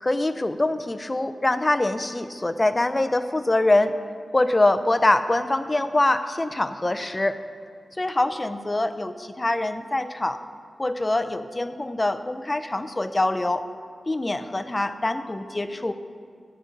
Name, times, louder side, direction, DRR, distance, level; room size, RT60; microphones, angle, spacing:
voice 1, 0.0-3.9 4.3-7.4 8.0-10.4 10.8-13.6 14.1-15.9, left 2 dB, 25° left, 10 dB, 0.6 m, -24 dB
14.5 x 5.3 x 9.1 m, 2.3 s
wide cardioid pair, 105°, 0 cm